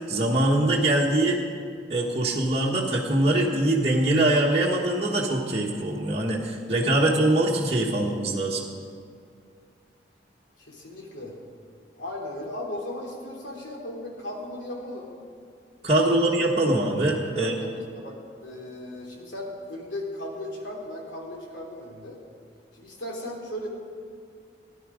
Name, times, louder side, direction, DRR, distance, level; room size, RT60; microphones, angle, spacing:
voice 1, 0.1-1.4 1.9-8.6 15.8-17.5, right 1 dB, 30° right, -5 dB, 1.3 m, -23 dB
voice 2, 10.6-11.3 12.0-15.1 16.0-16.3 17.3-22.2 22.7-23.7, left 1 dB, 85° left, -2 dB, 3.2 m, -36 dB
17.0 x 11.0 x 5.0 m, 2.2 s
head